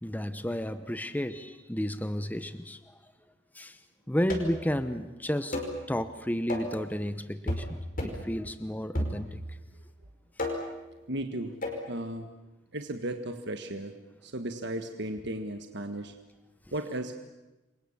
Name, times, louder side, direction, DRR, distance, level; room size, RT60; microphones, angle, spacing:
voice 1, 0.0-3.1 3.5-3.8 4.1-5.6 5.9-9.6, equal, 10° left, 11 dB, 0.8 m, -32 dB
sound 1, 4.3-4.7 5.5-5.8 6.5-6.8 7.5-7.7 8.0-8.3 8.9-9.5 10.4-10.8 11.6-11.8, left 1 dB, 45° left, 5.1 m, -33 dB
voice 2, 11.1-11.6 11.9-12.3 12.7-13.9 14.2-16.1 16.7-17.1, right 1 dB, 60° right, 6 dB, 1.5 m, -35 dB
29.0 x 24.0 x 7.2 m, 1.0 s
head